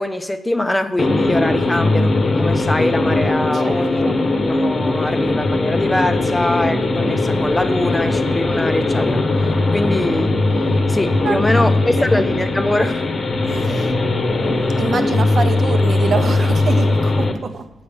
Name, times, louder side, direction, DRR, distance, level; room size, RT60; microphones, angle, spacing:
voice 1, 0.0-4.1 4.4-10.4 10.9-13.1, left 1 dB, 10° left, 0.5 m, -22 dB
sound 1, 1.0-17.3, left 2 dB, 40° left, 0.9 m, -19 dB
voice 2, 3.5-4.2 11.2-11.7 12.0-12.1 13.4-13.9 14.8-17.7, right 5 dB, 50° right, 0.7 m, -26 dB
7.8 x 5.1 x 7.0 m
cardioid pair, 120°, 0 cm